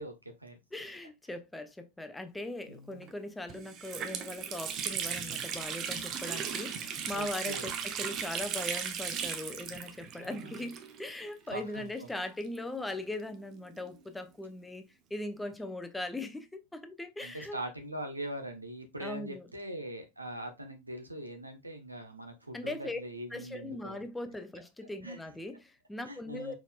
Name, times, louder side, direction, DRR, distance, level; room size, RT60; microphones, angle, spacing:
voice 1, 0.0-0.6 2.7-3.1 7.1-7.7 10.2-10.7 11.5-11.9 17.2-24.0 25.0-25.2 26.1-26.5, right 1 dB, 85° right, 1.0 m, -42 dB
voice 2, 0.7-17.6 19.0-19.5 22.5-23.0 23.3-26.5, left 1 dB, 5° left, 0.6 m, -40 dB
Water tap faucet, 3.0-3.1 3.5-11.2 11.5-11.6 12.4-14.0, right 7 dB, 35° right, 0.7 m, -37 dB
4.8 x 4.1 x 2.3 m
figure-of-eight pair, 90°, 0 cm